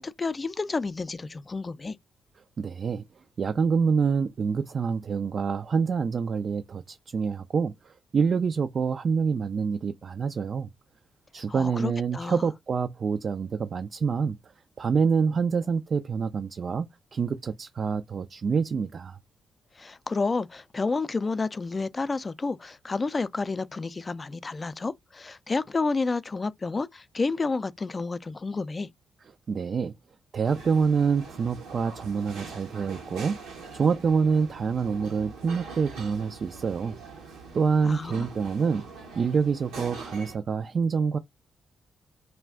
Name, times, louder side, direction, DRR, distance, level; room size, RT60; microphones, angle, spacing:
voice 1, 0.0-2.0 11.5-12.4 19.8-28.9 37.8-38.3, left 3 dB, 35° left, 0.4 m, -30 dB
voice 2, 2.6-3.0 3.4-10.7 11.3-14.4 14.8-19.2 29.5-29.9 30.3-33.4 33.7-37.0 37.5-38.8 39.2-41.2, right 5 dB, 55° right, 0.3 m, -26 dB
sound 1, 30.4-40.4, right 4 dB, 90° right, 0.8 m, -43 dB
2.4 x 2.1 x 3.4 m
supercardioid pair, 55°, 0 cm